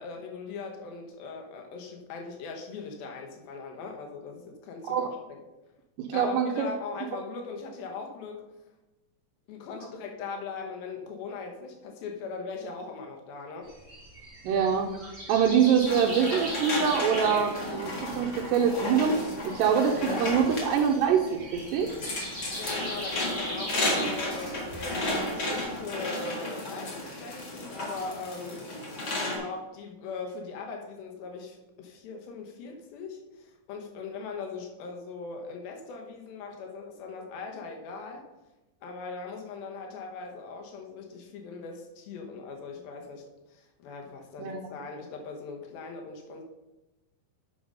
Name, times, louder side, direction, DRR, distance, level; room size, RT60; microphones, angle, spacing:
voice 1, 0.0-5.1 6.1-8.5 9.5-13.7 22.6-25.1 25.3-38.2 38.8-46.4, left 4 dB, 85° left, 2 dB, 2.9 m, -40 dB
voice 2, 6.0-6.7 14.4-19.1 19.5-21.2 21.5-21.9 44.4-44.7, right 7 dB, 80° right, 0 dB, 2.3 m, -25 dB
sound 1, 13.7-25.7, equal, 20° right, 2.2 m, -40 dB
sound 2, 15.9-29.4, left 1 dB, 40° left, 1.6 m, -33 dB
8.7 x 5.1 x 5.4 m, 1.0 s
omnidirectional pair, 4.1 m